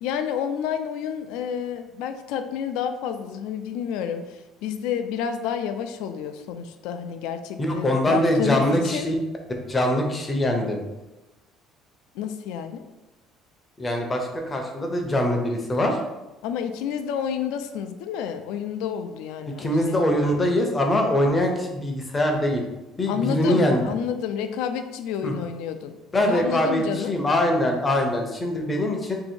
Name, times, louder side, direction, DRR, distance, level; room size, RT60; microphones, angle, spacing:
voice 1, 0.0-9.1 12.1-12.8 16.4-20.0 23.1-27.1, left 8 dB, 90° left, 8 dB, 0.3 m, -30 dB
voice 2, 7.6-9.1 9.7-10.8 13.8-16.0 19.6-22.6 23.0-23.8 25.2-25.3 26.1-29.2, left 1 dB, 15° left, 2 dB, 0.5 m, -23 dB
2.7 x 2.7 x 4.3 m, 1.0 s
cardioid pair, 165°, 0 cm